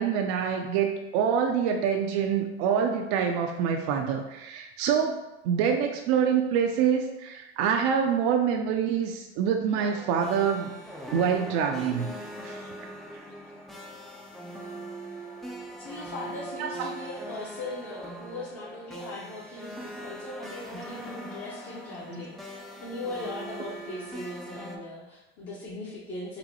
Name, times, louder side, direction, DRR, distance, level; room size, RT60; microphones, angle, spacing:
voice 1, 0.0-10.8 11.1-12.1 12.4-12.6 16.6-16.9 22.1-22.2, right 7 dB, 60° right, 3 dB, 0.4 m, -26 dB
sound 1, 9.8-24.8, right 1 dB, ahead, 0.3 m, -41 dB
voice 2, 15.8-26.4, left 2 dB, 40° left, -5 dB, 0.8 m, -39 dB
4.0 x 2.2 x 2.8 m, 1.0 s
hypercardioid pair, 80°, 34 cm